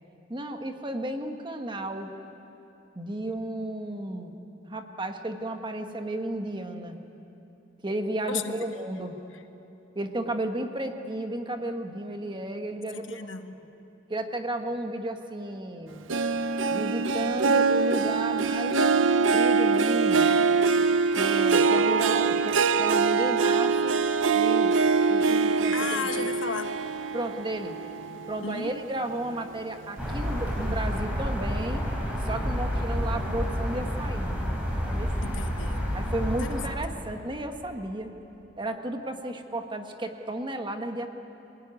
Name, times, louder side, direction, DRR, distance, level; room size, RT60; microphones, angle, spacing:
voice 1, 0.3-2.1 2.9-4.3 4.6-7.0 7.8-9.2 9.9-13.3 14.1-16.0 16.7-18.8 19.3-20.4 21.2-24.0 24.3-24.7 25.1-26.3 27.1-27.8 28.3-31.8 32.2-34.4 34.8-35.1 35.9-38.1 38.6-41.1, right 1 dB, 25° right, 5 dB, 1.5 m, -33 dB
voice 2, 12.9-13.5 25.7-26.7 28.4-28.7 35.2-35.8 36.4-36.6, left 5 dB, 80° left, 7 dB, 1.3 m, -34 dB
Harp, 16.1-28.8 29.2-29.6 30.1-30.2, right 4 dB, 85° right, 0.7 m, -24 dB
sound 1, 30.0-36.7, equal, 5° right, 4.6 m, -29 dB
26.5 x 18.5 x 9.6 m, 2.9 s
head